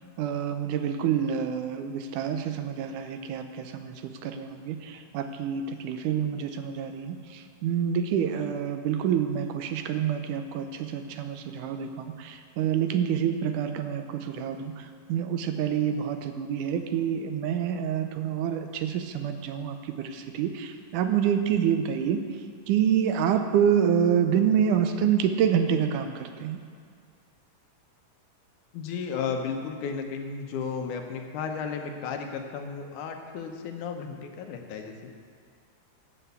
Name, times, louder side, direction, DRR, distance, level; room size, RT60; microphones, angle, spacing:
voice 1, 0.2-22.2 22.7-26.6, right 8 dB, 85° right, 7 dB, 2.2 m, -27 dB
voice 2, 28.7-35.1, left 6 dB, 75° left, 4 dB, 2.3 m, -34 dB
12.5 x 5.8 x 8.2 m, 2.1 s
omnidirectional pair, 3.7 m